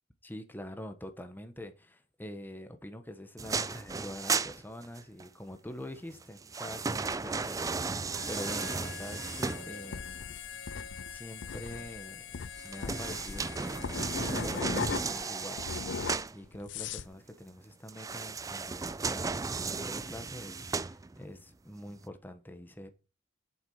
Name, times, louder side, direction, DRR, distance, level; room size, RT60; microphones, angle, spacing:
voice 1, 0.2-10.4 11.1-12.2 12.6-13.7 14.2-22.9, left 1 dB, 10° left, 1.3 m, -45 dB
sound 1, 3.4-5.3 6.1-10.1 12.5-16.4 17.9-21.4 21.9-22.0, right 4 dB, 20° right, 0.4 m, -35 dB
Harmonica, 8.1-16.2, left 8 dB, 85° left, 1.1 m, -46 dB
sound 2, 9.9-15.2 15.6-17.1, left 5 dB, 70° left, 0.5 m, -38 dB
8.2 x 7.1 x 5.6 m
head